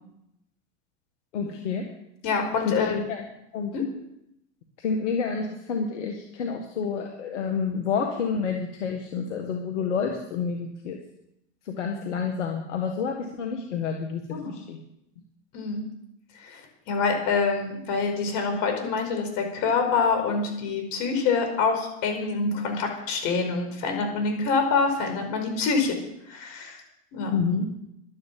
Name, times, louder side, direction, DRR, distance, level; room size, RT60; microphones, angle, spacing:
voice 1, 1.3-1.8 2.7-3.2 3.5-3.7 4.8-11.0 11.7-14.2 14.5-14.8 27.3-27.7, left 5 dB, 80° left, 3 dB, 1.9 m, -29 dB
voice 2, 2.2-3.0 3.7-3.8 14.3-14.5 15.5-15.8 16.4-25.9 26.3-26.8 27.1-27.4, left 4 dB, 55° left, 5 dB, 5.2 m, -26 dB
12.0 x 11.0 x 7.6 m, 0.81 s
hypercardioid pair, 95°, 35 cm